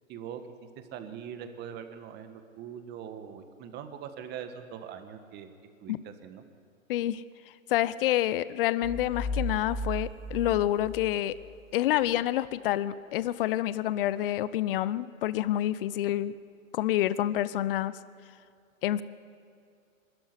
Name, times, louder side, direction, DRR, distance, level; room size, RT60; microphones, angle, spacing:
voice 1, 0.1-5.5 5.8-6.4, right 8 dB, 25° right, 8 dB, 1.6 m, -42 dB
voice 2, 6.9-7.2 7.7-11.3 11.7-16.3 16.7-17.9 18.8-19.0, left 13 dB, 40° left, 17 dB, 0.7 m, -28 dB
sound 1, 8.8-11.6, left 1 dB, ahead, 0.4 m, -35 dB
23.0 x 13.5 x 9.8 m, 2.4 s
hypercardioid pair, 130°, 41 cm